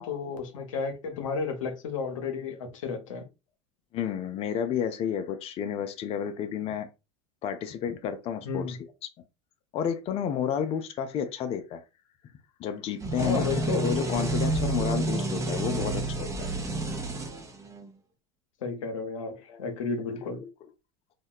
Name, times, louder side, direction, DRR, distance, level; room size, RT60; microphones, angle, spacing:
voice 1, 0.0-3.2 8.5-8.8 13.2-13.9 18.6-20.4, left 4 dB, 90° left, 0.6 m, -32 dB
voice 2, 3.9-6.9 7.4-8.9 9.7-11.8 12.6-16.5 19.5-19.6 20.2-20.3, left 8 dB, 40° left, 0.4 m, -31 dB
sound 1, 13.0-17.9, right 2 dB, 20° right, 0.6 m, -30 dB
2.8 x 2.1 x 2.2 m
hypercardioid pair, 95°, 16 cm